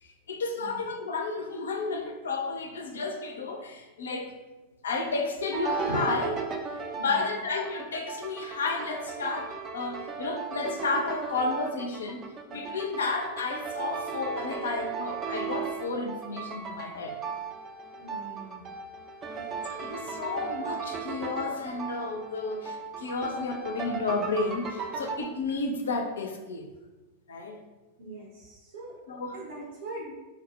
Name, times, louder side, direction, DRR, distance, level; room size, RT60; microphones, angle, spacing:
voice 1, 0.0-4.4 4.8-6.5 7.0-17.2 19.7-26.7 27.3-27.6 29.1-29.5, left 3 dB, 65° left, 4 dB, 0.4 m, -32 dB
sound 1, 5.5-25.3, right 5 dB, 30° right, 0.4 m, -36 dB
voice 2, 6.9-7.3 18.0-18.6 19.3-19.5 19.9-20.1 20.4-20.6 28.0-28.9 29.3-30.1, right 2 dB, 65° right, -5 dB, 0.7 m, -43 dB
4.0 x 2.0 x 3.0 m, 1.1 s
figure-of-eight pair, 90°, 0 cm